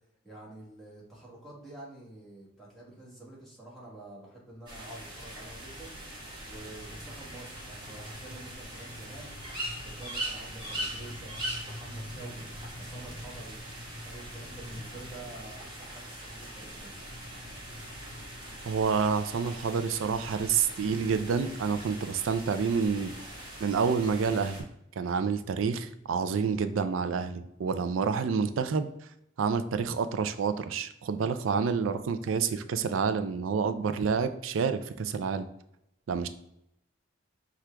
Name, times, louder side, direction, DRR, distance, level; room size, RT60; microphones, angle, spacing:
voice 1, 0.2-6.0 6.5-9.3 9.8-11.3 11.7-12.5 12.8-13.6 14.0-17.1, right 2 dB, ahead, -7 dB, 1.5 m, -48 dB
sound 1, 4.7-24.6, right 1 dB, 25° right, 1.4 m, -41 dB
voice 2, 18.6-24.6 25.0-28.9 29.4-35.5 36.1-36.3, right 5 dB, 85° right, 10 dB, 0.4 m, -28 dB
5.9 x 2.4 x 3.3 m, 0.80 s
head